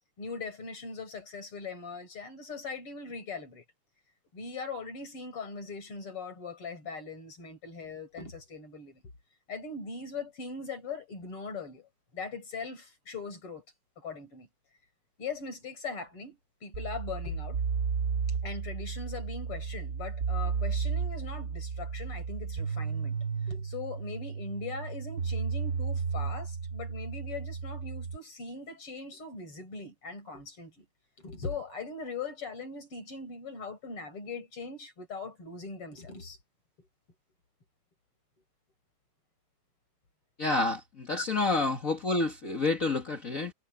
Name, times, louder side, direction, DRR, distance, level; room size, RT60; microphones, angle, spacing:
voice 1, 0.2-3.6 4.3-9.0 9.5-13.6 14.0-14.5 15.2-17.6 18.4-23.2 23.5-30.9 31.2-36.4 36.8-36.9 41.1-41.2, left 4 dB, 85° left, 6.0 m, -40 dB
sound 1, 16.7-28.2, right 6 dB, 50° right, 1.0 m, -33 dB
voice 2, 40.4-43.5, left 3 dB, 40° left, 2.0 m, -29 dB
omnidirectional pair, 2.4 m